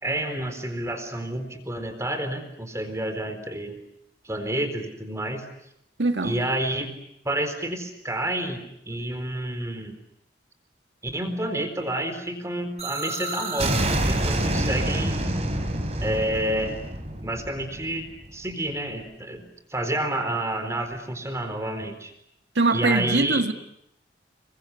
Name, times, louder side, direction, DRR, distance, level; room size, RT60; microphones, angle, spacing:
voice 1, 0.0-3.8 4.2-5.4 6.2-6.9 7.2-9.9 11.0-15.3 16.0-16.8 17.2-19.4 19.7-22.1 22.7-23.4, right 1 dB, 15° right, 4.1 m, -29 dB
voice 2, 6.0-6.4 22.6-23.5, right 3 dB, 85° right, 1.9 m, -22 dB
sound 1, 12.8-18.5, right 1 dB, 35° right, 4.7 m, -27 dB
28.5 x 23.0 x 8.4 m
head